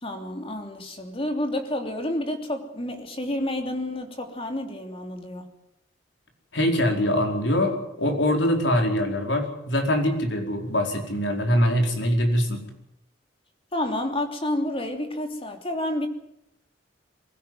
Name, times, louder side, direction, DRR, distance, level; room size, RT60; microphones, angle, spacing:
voice 1, 0.0-5.4 13.7-16.1, left 1 dB, 30° left, 5 dB, 3.1 m, -29 dB
voice 2, 6.5-12.6, equal, 75° left, 3 dB, 4.8 m, -23 dB
23.0 x 16.0 x 9.4 m, 0.80 s
head